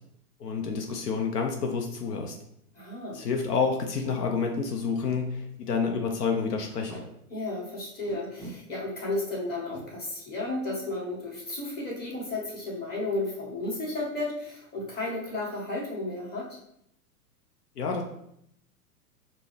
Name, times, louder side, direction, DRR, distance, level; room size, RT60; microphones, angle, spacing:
voice 1, 0.4-2.3 3.1-7.0 17.8-18.0, left 5 dB, 80° left, 3 dB, 0.8 m, -29 dB
voice 2, 2.7-3.2 7.3-16.5, left 2 dB, 20° left, -4 dB, 1.6 m, -33 dB
Packing tape duct tape, 4.6-4.7 5.0-5.1 5.5-5.6 6.7-7.0 8.1-8.6 9.5-9.8 11.4-11.6 11.9-12.1 12.3-12.8, right 2 dB, 5° left, 1.3 m, -45 dB
5.2 x 2.9 x 3.2 m, 0.75 s
hypercardioid pair, 110°, 46 cm